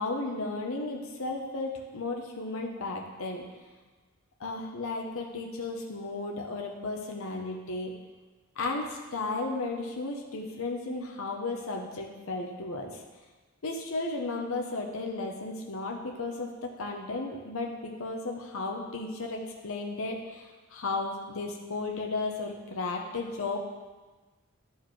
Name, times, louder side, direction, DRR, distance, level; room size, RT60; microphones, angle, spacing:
voice 1, 0.0-3.4 4.4-7.9 8.6-13.0 13.6-23.6, left 3 dB, 65° left, 0 dB, 0.8 m, -34 dB
11.0 x 4.6 x 3.2 m, 1.3 s
head